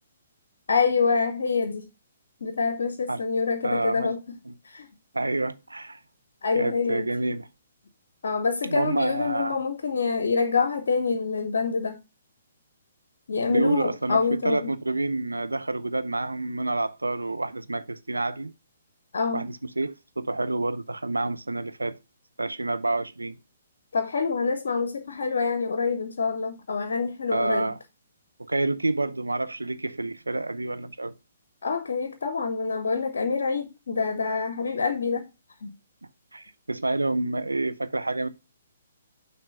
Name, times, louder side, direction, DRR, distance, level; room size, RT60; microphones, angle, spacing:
voice 1, 0.7-1.9 2.4-4.2 4.6-4.9 6.4-7.1 8.2-12.0 13.3-14.7 19.1-19.4 23.9-27.7 31.6-35.3 35.6-35.7, left 5 dB, 60° left, 0.7 m, -26 dB
voice 2, 3.6-4.1 4.5-4.6 5.1-6.0 6.5-7.5 8.6-9.6 13.5-18.5 19.3-22.0 22.4-23.4 27.3-27.8 28.4-31.1 36.3-38.3, right 2 dB, 80° right, 0.4 m, -28 dB
6.1 x 3.1 x 5.3 m
figure-of-eight pair, 130°, 0 cm